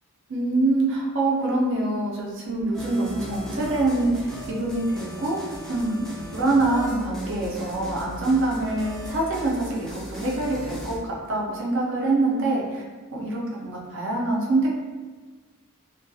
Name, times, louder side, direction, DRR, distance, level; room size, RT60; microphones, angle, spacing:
voice 1, 0.3-12.8 13.1-14.7, right 2 dB, 60° right, -3 dB, 0.6 m, -25 dB
sound 1, 2.7-11.0, equal, ahead, 0.3 m, -37 dB
2.3 x 2.3 x 2.6 m, 1.4 s
head